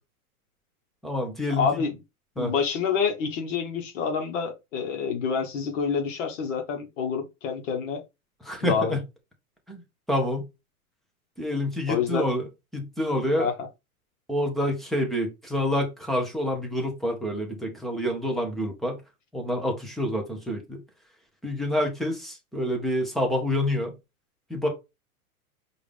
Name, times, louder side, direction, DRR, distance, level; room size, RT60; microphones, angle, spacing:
voice 1, 1.0-1.8 2.4-2.5 8.4-9.0 9.7-9.8 10.1-10.5 11.4-12.5 12.7-13.5 14.3-19.0 19.3-20.8 21.4-23.9 24.5-24.7, left 1 dB, ahead, 0.5 m, -27 dB
voice 2, 1.6-1.9 2.4-8.0 8.6-8.9 11.9-12.3 13.4-13.7, left 6 dB, 60° left, 1.0 m, -27 dB
4.8 x 2.5 x 3.3 m
hypercardioid pair, 130°, 44 cm